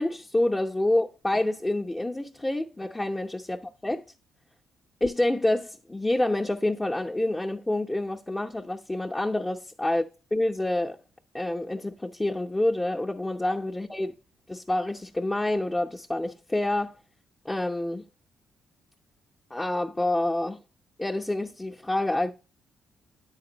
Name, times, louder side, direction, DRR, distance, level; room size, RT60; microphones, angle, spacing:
voice 1, 0.0-4.0 5.0-10.0 10.3-11.0 11.3-14.1 14.5-16.9 17.4-18.1 19.5-20.6 21.0-22.3, left 1 dB, 15° left, 0.6 m, -27 dB
9.6 x 4.1 x 3.9 m
cardioid pair, 90°, 0 cm